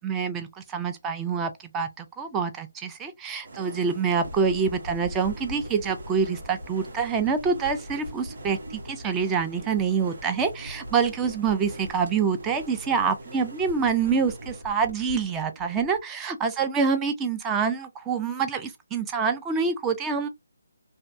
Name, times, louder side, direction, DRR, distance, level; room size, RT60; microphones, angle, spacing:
voice 1, 0.0-8.6 8.9-20.3, right 5 dB, 10° right, 0.3 m, -26 dB
sound 1, 3.4-14.6, right 1 dB, 60° right, 0.9 m, -44 dB
sound 2, 4.0-16.0, equal, 90° right, 1.4 m, -43 dB
2.5 x 2.1 x 2.4 m
figure-of-eight pair, 155°, 0 cm